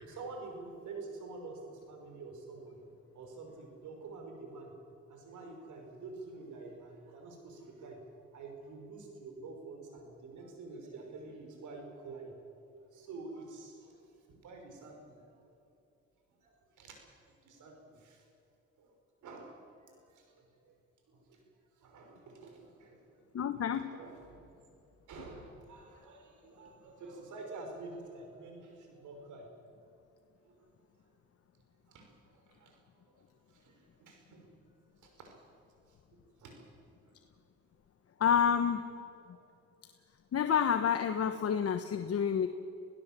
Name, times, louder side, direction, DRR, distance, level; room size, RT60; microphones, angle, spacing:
voice 1, 0.0-4.7 5.1-12.4 12.9-14.0 14.4-15.4 16.4-16.9 17.4-18.2 18.8-19.0 19.2-19.6 19.9-20.7 21.1-21.4 21.8-23.2 23.7-24.5 25.1-29.5 30.4-30.6 31.9-32.8 33.1-33.2 33.5-33.7 34.0-34.5 35.0-35.3 36.4-36.7 37.0-37.1, right 3 dB, 75° right, 3 dB, 5.6 m, -48 dB
voice 2, 23.3-24.0 38.2-38.9 40.3-42.5, left 7 dB, 50° left, 8 dB, 1.2 m, -29 dB
27.0 x 16.5 x 7.6 m, 2.6 s
cardioid pair, 90°, 30 cm